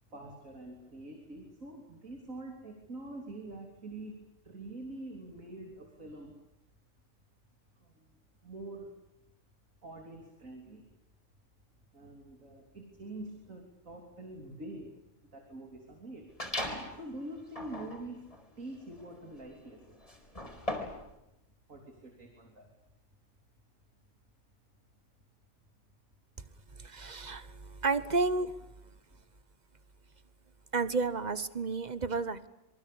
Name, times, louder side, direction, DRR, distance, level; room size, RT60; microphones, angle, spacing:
voice 1, 0.1-6.3 7.8-8.1 8.4-8.9 9.8-10.9 11.9-14.9 15.2-16.3 16.9-18.3 18.6-20.0 21.7-22.7, right 2 dB, 85° right, 2 dB, 3.9 m, -45 dB
sound 1, 16.4-17.0 17.5-21.1, left 1 dB, 25° left, 4.4 m, -39 dB
voice 2, 26.8-28.5 30.7-32.5, right 3 dB, 35° right, 14 dB, 1.2 m, -31 dB
27.0 x 24.0 x 8.6 m, 0.87 s
omnidirectional pair, 1.4 m